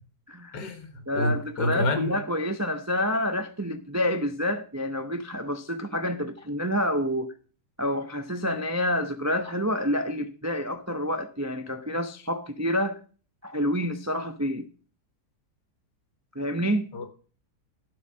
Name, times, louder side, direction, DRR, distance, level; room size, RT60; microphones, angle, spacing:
voice 1, 0.5-2.2 16.6-17.1, left 2 dB, 80° left, 2.1 m, -29 dB
voice 2, 1.1-7.3 7.8-13.0 13.4-14.7 16.3-16.9, equal, 25° right, 0.3 m, -28 dB
12.0 x 4.8 x 7.3 m
omnidirectional pair, 1.8 m